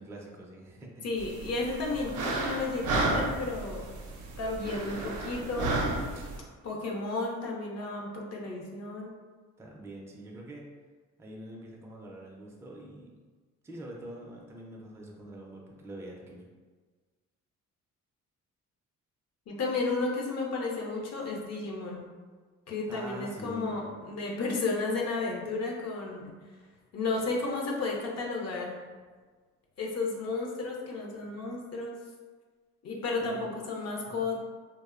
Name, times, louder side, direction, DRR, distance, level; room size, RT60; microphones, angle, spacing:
voice 1, 0.0-1.1 9.6-10.6 11.2-13.1 13.6-16.5 22.9-23.8 33.2-33.5 33.8-33.9, right 1 dB, 10° right, -2 dB, 0.3 m, -44 dB
voice 2, 1.0-3.8 4.4-5.8 6.6-9.1 19.5-22.1 22.7-26.3 26.9-28.8 29.8-32.0 32.8-34.4, left 3 dB, 55° left, -1 dB, 0.5 m, -33 dB
sound 1, 1.2-6.4, right 2 dB, 75° right, 0.5 m, -32 dB
2.5 x 2.0 x 2.4 m, 1.4 s
cardioid pair, 90°, 32 cm